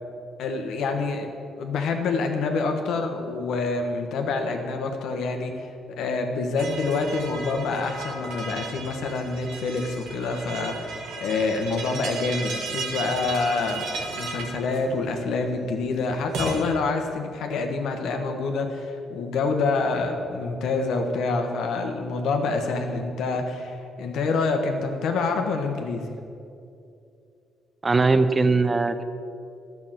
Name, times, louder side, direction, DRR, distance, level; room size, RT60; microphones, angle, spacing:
voice 1, 0.4-5.7 6.0-26.1, left 3 dB, 80° left, 4 dB, 1.2 m, -27 dB
sound 1, 6.6-16.6, right 4 dB, 85° right, 1.7 m, -35 dB
voice 2, 27.8-29.0, right 3 dB, 25° right, 11 dB, 0.6 m, -20 dB
11.0 x 6.0 x 7.5 m, 2.6 s
cardioid pair, 90°, 0 cm